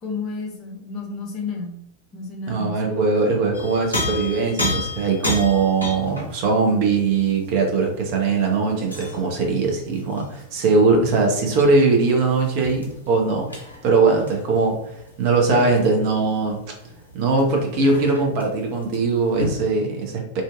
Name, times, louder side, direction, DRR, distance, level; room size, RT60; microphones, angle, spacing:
voice 1, 0.0-1.8 2.1-2.8, left 4 dB, 30° left, -1 dB, 0.8 m, -31 dB
voice 2, 2.5-13.5 13.8-14.8 15.2-16.6 17.1-20.4, right 4 dB, 45° right, 1 dB, 0.6 m, -20 dB
sound 1, 3.5-9.4 9.7-19.5, left 1 dB, 85° left, 0.6 m, -33 dB
2.6 x 2.2 x 2.4 m, 0.74 s
figure-of-eight pair, 90°, 0 cm